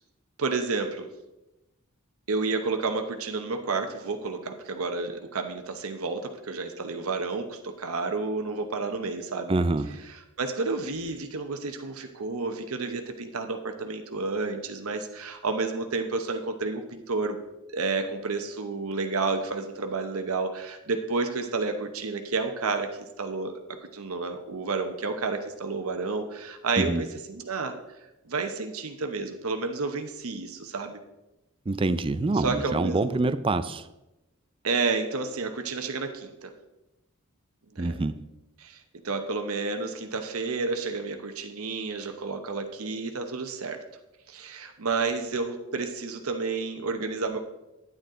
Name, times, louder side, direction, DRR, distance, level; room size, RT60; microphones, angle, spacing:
voice 1, 0.4-1.1 2.3-9.5 10.4-17.4 17.7-23.6 23.9-27.8 28.3-31.0 32.3-33.2 34.6-36.5 37.7-38.0 38.6-38.8 39.0-43.8 44.3-47.4, right 3 dB, 80° right, 6 dB, 0.9 m, -30 dB
voice 2, 9.5-10.0 26.8-27.0 31.7-33.9 37.8-38.2, right 2 dB, 25° right, 13 dB, 0.4 m, -26 dB
10.0 x 9.1 x 3.8 m, 0.97 s
head